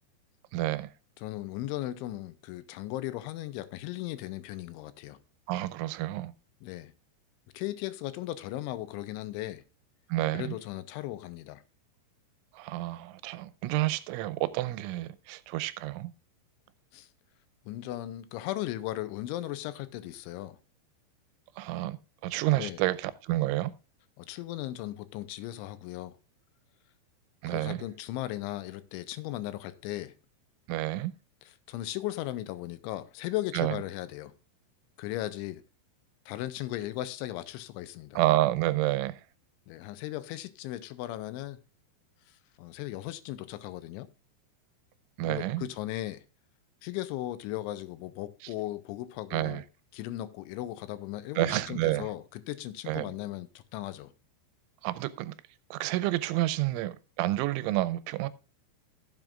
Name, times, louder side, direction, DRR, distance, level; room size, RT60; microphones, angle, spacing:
voice 1, 0.5-0.9 5.5-6.3 10.1-10.6 12.5-16.1 21.6-22.0 22.2-23.7 27.4-27.8 30.7-31.1 33.5-33.8 38.2-39.2 45.2-45.7 49.3-49.6 51.4-52.1 52.9-53.1 54.8-55.3 55.7-58.3, right 16 dB, 90° right, 3.1 m, -29 dB
voice 2, 1.2-5.2 6.6-6.9 7.5-9.6 10.3-11.6 16.9-17.1 17.7-20.6 22.5-22.8 24.2-26.2 27.5-30.1 31.4-34.3 35.0-35.6 36.3-38.2 39.7-41.6 42.3-44.1 45.2-46.2 46.8-49.6 49.9-54.1, left 15 dB, 90° left, 3.1 m, -37 dB
16.0 x 7.6 x 2.4 m
omnidirectional pair, 5.4 m